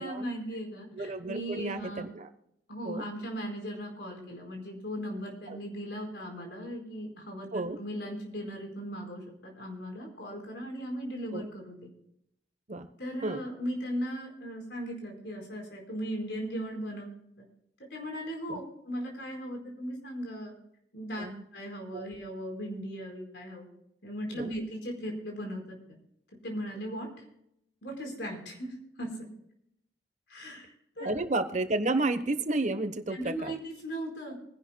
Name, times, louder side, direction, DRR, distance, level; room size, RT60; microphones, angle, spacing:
voice 1, 0.0-2.0 2.7-11.9 13.0-17.1 17.9-20.5 20.9-21.3 21.5-23.7 24.0-25.8 26.4-27.1 27.8-29.1 30.3-31.2 33.1-34.4, equal, 75° left, 2 dB, 4.4 m, -38 dB
voice 2, 0.9-2.3 2.8-3.0 5.5-5.6 7.5-7.8 11.3-11.5 12.7-12.9 13.2-13.4 18.5-18.6 21.2-21.4 21.9-22.1 24.3-24.5 31.0-33.5, right 2 dB, 45° right, 10 dB, 1.0 m, -31 dB
25.0 x 11.0 x 2.2 m, 0.78 s
head